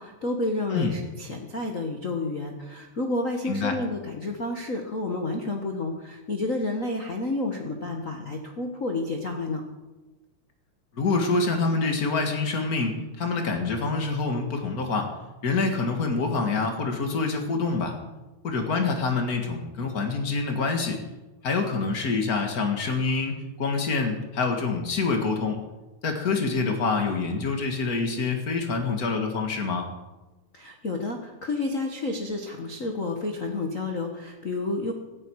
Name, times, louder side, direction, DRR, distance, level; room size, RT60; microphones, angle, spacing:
voice 1, 0.0-9.6 30.5-34.9, left 2 dB, 90° left, 3 dB, 0.7 m, -30 dB
voice 2, 3.4-3.7 10.9-15.1 15.4-18.0 18.4-21.0 21.4-25.6 26.0-29.9, left 4 dB, 35° left, 4 dB, 1.7 m, -26 dB
17.5 x 14.5 x 4.8 m, 1.1 s
omnidirectional pair, 3.9 m